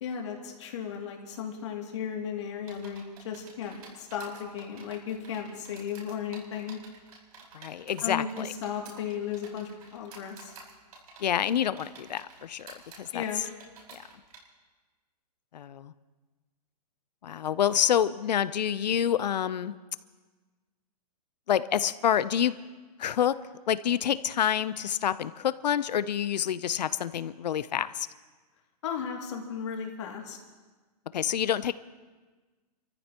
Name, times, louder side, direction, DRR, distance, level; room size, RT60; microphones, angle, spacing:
voice 1, 0.0-6.8 8.0-10.5 13.1-13.4 28.8-30.4, left 7 dB, 45° left, 0 dB, 2.5 m, -35 dB
sound 1, 2.7-14.4, right 4 dB, 65° right, 4.5 m, -51 dB
voice 2, 7.5-8.5 11.2-13.2 13.9-14.0 15.5-15.9 17.2-19.7 21.5-22.5 23.0-23.4 23.7-28.1 31.1-31.7, left 9 dB, 80° left, 15 dB, 0.6 m, -27 dB
30.0 x 14.5 x 3.0 m, 1.3 s
hypercardioid pair, 175°, 21 cm